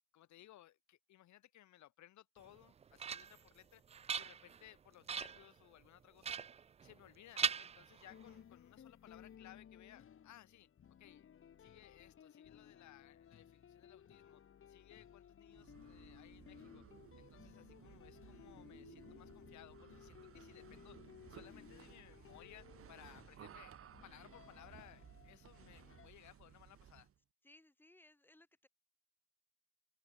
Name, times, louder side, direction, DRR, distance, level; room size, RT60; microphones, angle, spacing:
voice 1, 0.1-3.8 4.1-6.4 6.8-10.7 11.0-11.3 11.6-14.4 14.7-16.8 17.2-21.0 21.3-23.7 24.0-27.1, left 13 dB, 55° left, 7.4 m, -61 dB
sound 1, 2.5-3.5 3.9-4.7 5.1-5.5 6.2-7.1 7.4-8.3, right 7 dB, 20° right, 0.5 m, -40 dB
sound 2, 8.1-26.1, left 8 dB, 40° left, 5.7 m, -59 dB
sound 3, 15.4-27.2, right 9 dB, 40° right, 4.9 m, -59 dB
voice 2, 27.4-28.7, left 1 dB, 5° left, 5.9 m, -64 dB
cardioid pair, 125°, 34 cm